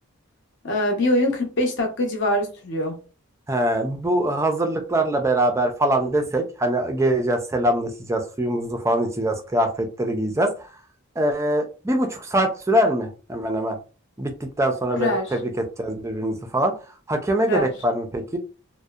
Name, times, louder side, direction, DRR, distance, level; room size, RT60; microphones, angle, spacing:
voice 1, 0.6-3.0 15.0-15.3 17.4-17.7, left 1 dB, 55° left, 0.7 m, -23 dB
voice 2, 3.5-10.7 11.2-13.8 14.2-16.7 17.1-18.4, right 1 dB, 15° right, 0.3 m, -23 dB
2.6 x 2.1 x 2.3 m
head